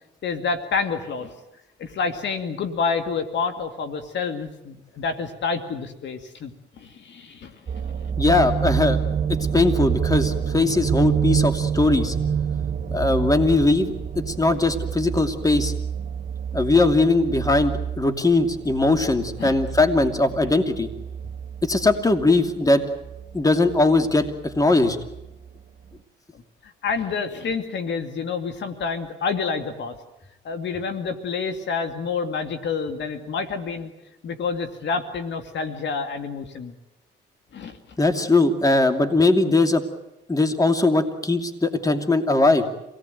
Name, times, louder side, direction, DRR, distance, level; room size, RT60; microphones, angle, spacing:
voice 1, 0.2-1.3 1.8-6.5 6.8-7.5 19.4-19.6 24.6-24.7 26.6-30.0 30.4-33.9 34.2-36.8 37.5-38.1, left 5 dB, 65° left, 8 dB, 2.3 m, -28 dB
sound 1, 7.7-25.5 25.9-26.0, right 7 dB, 45° right, 1.6 m, -28 dB
voice 2, 8.2-9.0 9.5-12.1 12.9-13.9 14.3-15.7 16.5-20.9 21.6-22.8 23.3-24.2 24.5-25.0 38.0-39.8 40.3-42.6, left 2 dB, 15° left, 7 dB, 2.7 m, -20 dB
27.0 x 18.5 x 9.3 m, 0.90 s
cardioid pair, 90°, 20 cm